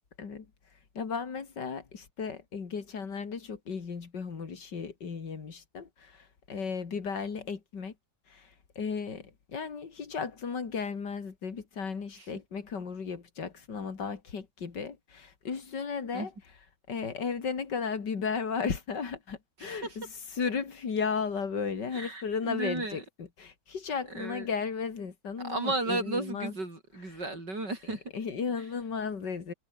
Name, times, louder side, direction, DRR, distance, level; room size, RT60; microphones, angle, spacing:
voice 1, 0.9-7.9 8.3-16.3 16.9-26.5 27.1-27.2 27.8-29.5, left 5 dB, 85° left, 3.1 m, -35 dB
voice 2, 19.6-20.0 21.9-23.0 24.2-24.5 25.4-28.0, right 2 dB, 85° right, 7.3 m, -34 dB
omnidirectional pair, 1.8 m